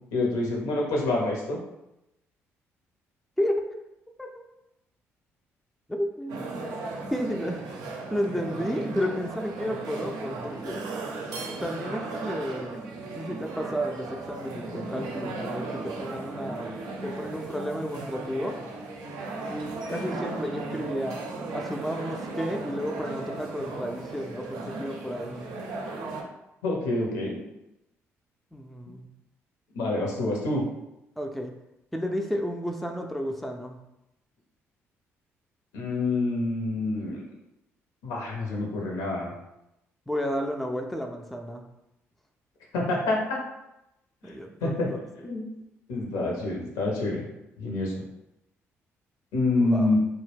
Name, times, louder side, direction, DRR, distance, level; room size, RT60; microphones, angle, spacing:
voice 1, 0.1-1.6 26.6-27.4 29.7-30.6 35.7-37.2 38.0-39.3 42.7-43.4 44.6-44.9 45.2-45.4 45.9-47.2 47.6-47.9 49.3-50.0, left 2 dB, 70° left, -2 dB, 0.7 m, -27 dB
voice 2, 3.4-3.7 4.2-4.4 5.9-6.8 7.1-7.6 8.1-10.9 11.6-12.8 13.1-16.7 17.0-18.6 19.5-21.2 21.5-25.5 28.5-29.1 31.2-31.5 31.9-33.8 40.1-41.6 44.2-45.0 49.6-50.0, equal, ahead, 3 dB, 0.3 m, -32 dB
sound 1, 6.3-26.2, right 3 dB, 65° right, 0.4 m, -36 dB
2.2 x 2.1 x 3.3 m, 0.89 s
hypercardioid pair, 45°, 7 cm